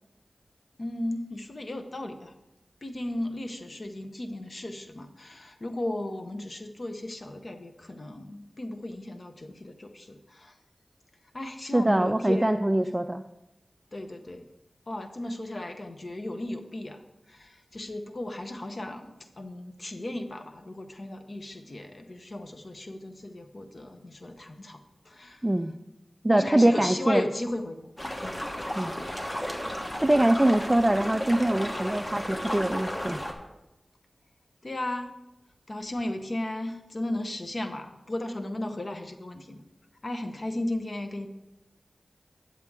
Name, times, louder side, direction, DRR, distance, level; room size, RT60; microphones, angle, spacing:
voice 1, 0.8-2.3 2.8-10.6 11.3-12.9 13.9-14.4 14.9-17.0 17.3-25.5 26.3-27.9 28.2-28.4 34.6-35.2 35.7-39.6 40.0-41.3, left 1 dB, 55° left, 6 dB, 0.7 m, -35 dB
voice 2, 11.7-13.2 25.4-25.7 26.2-27.2 28.8-28.9 30.0-33.2, right 1 dB, 20° right, 8 dB, 0.3 m, -23 dB
sound 1, 28.0-33.3, equal, 30° left, 1.3 m, -33 dB
9.4 x 7.4 x 3.6 m, 0.95 s
wide cardioid pair, 50°, 0 cm